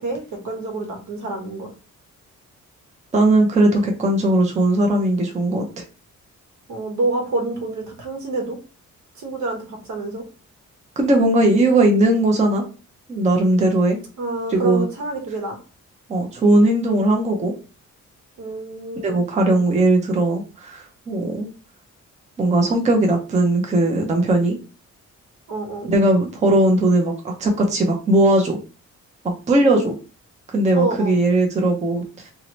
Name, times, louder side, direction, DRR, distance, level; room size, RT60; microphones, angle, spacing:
voice 1, 0.0-1.7 6.7-8.6 9.1-10.2 14.2-15.6 18.4-19.2 25.5-25.9 29.6-29.9 30.7-31.2, right 2 dB, 70° right, 2 dB, 1.2 m, -27 dB
voice 2, 3.1-5.6 11.0-12.6 13.1-14.0 14.5-14.9 16.1-17.5 19.0-21.5 22.4-24.6 25.8-28.6 29.5-29.9 30.5-32.3, right 1 dB, 25° right, 2 dB, 0.5 m, -18 dB
2.9 x 2.8 x 3.0 m, 0.35 s
wide cardioid pair, 165°, 30 cm